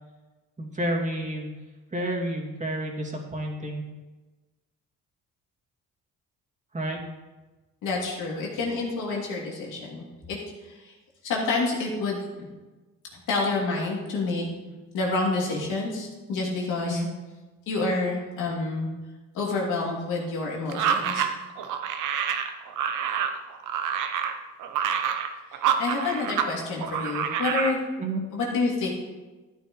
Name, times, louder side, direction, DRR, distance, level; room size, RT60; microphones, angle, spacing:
voice 1, 0.6-1.6 1.9-3.9 6.7-7.0 16.8-17.1 28.0-28.2, right 1 dB, 25° right, -1 dB, 2.4 m, -30 dB
voice 2, 7.8-10.4 10.6-10.9 11.2-12.5 13.1-14.4 14.9-17.0 17.7-18.9 19.3-21.2 25.8-27.8 28.3-28.9, left 3 dB, 85° left, -3 dB, 2.9 m, -28 dB
sound 1, 20.7-26.5 26.8-27.8, right 8 dB, 85° right, 0.9 m, -27 dB
13.0 x 9.1 x 3.2 m, 1.2 s
cardioid pair, 90°, 30 cm